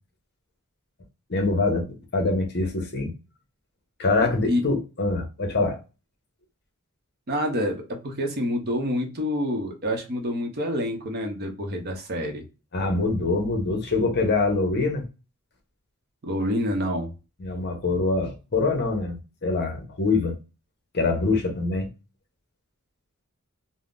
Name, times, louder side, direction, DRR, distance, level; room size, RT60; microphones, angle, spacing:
voice 1, 1.3-3.1 4.0-5.8 12.7-15.0 17.4-20.3 20.9-21.9, left 3 dB, 50° left, 0.7 m, -24 dB
voice 2, 7.3-12.4 16.2-17.1, equal, 45° right, 0.7 m, -27 dB
3.5 x 2.0 x 2.4 m
head